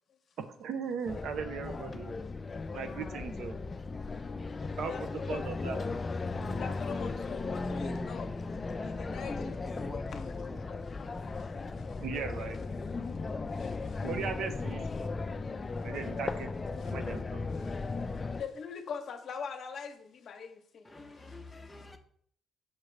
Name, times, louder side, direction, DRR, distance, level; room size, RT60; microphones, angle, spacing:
voice 1, 0.4-2.1 2.7-3.6 4.8-4.9 5.3-6.0 12.0-12.6 14.0-14.9 15.8-16.5 16.9-17.5, right 6 dB, 75° right, 0.6 m, -37 dB
sound 1, 1.1-18.4, left 3 dB, 30° left, 0.4 m, -36 dB
voice 2, 2.7-3.1 4.6-5.4 6.2-8.3 8.8-9.6 9.9-10.2 10.7-11.5 11.8-12.0 13.0-14.1 15.6-16.0 16.8-17.0 17.5-17.9 18.4-20.9 21.2-21.4, left 6 dB, 60° left, 0.8 m, -44 dB
voice 3, 7.5-8.2 9.1-10.8 18.2-18.3 20.8-22.0, left 2 dB, 15° left, 0.8 m, -45 dB
5.8 x 5.0 x 3.3 m
cardioid pair, 90°, 0 cm